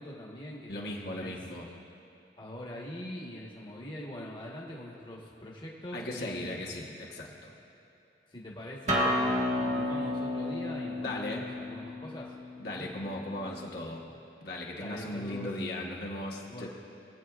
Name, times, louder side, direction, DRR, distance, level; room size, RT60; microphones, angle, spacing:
voice 1, 0.0-1.5 2.4-6.7 8.3-12.3 12.7-12.9 14.8-15.5 16.5-16.7, left 1 dB, 25° left, -3 dB, 1.3 m, -43 dB
voice 2, 0.7-1.7 5.9-7.5 11.0-11.4 12.6-14.0 14.4-16.7, left 1 dB, 60° left, -2 dB, 1.3 m, -37 dB
Acoustic guitar, 8.9-14.1, left 1 dB, 45° right, 1.3 m, -32 dB
22.0 x 8.3 x 2.4 m, 3.0 s
head